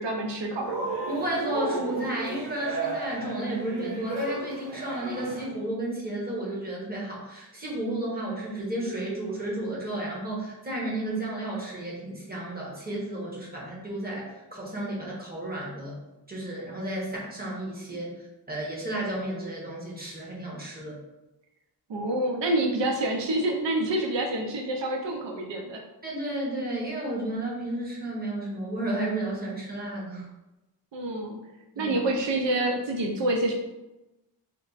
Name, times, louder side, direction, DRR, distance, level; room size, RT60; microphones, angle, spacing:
voice 1, 0.0-0.9 21.9-25.8 30.9-31.4 31.8-33.5, right 1 dB, 85° right, 1 dB, 0.7 m, -27 dB
Cheering, 0.6-5.6, right 3 dB, 50° right, 0.9 m, -33 dB
voice 2, 1.1-16.0 16.3-18.1 18.5-21.0 26.0-30.2 31.7-32.0, right 1 dB, 20° right, -4 dB, 1.2 m, -32 dB
4.2 x 2.2 x 4.0 m, 1.0 s
wide cardioid pair, 135°, 42 cm